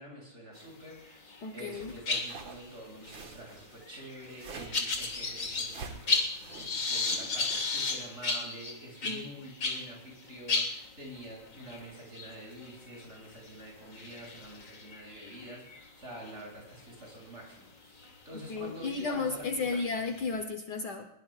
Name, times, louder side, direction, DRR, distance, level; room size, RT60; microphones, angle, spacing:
voice 1, 0.0-19.9, right 1 dB, 35° right, -2 dB, 7.8 m, -47 dB
sound 1, 1.0-1.4 1.7-9.9 10.2-10.3 10.5-16.3 16.9-17.1 18.0-18.1 18.7-20.4, left 4 dB, 40° left, 2.2 m, -35 dB
voice 2, 1.4-1.9 9.0-9.3 18.5-21.1, left 4 dB, 60° left, 6 dB, 1.6 m, -33 dB
sound 2, 2.1-7.8, right 4 dB, 75° right, 2.4 m, -48 dB
21.5 x 21.5 x 2.4 m, 0.79 s
omnidirectional pair, 2.2 m